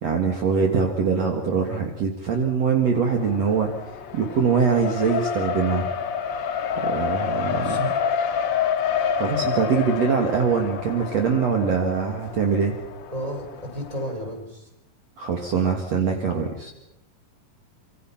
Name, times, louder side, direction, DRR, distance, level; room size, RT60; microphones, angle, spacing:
voice 1, 0.0-3.7 4.1-5.9 6.8-7.9 9.1-12.7 15.2-16.7, right 5 dB, 55° right, 3 dB, 2.8 m, -23 dB
Race car auto racing, 3.1-14.1, left 7 dB, 80° left, 1.0 m, -28 dB
voice 2, 7.5-7.9 13.1-14.7, equal, 10° right, 2 dB, 4.8 m, -33 dB
26.0 x 25.5 x 5.8 m, 0.89 s
omnidirectional pair, 3.7 m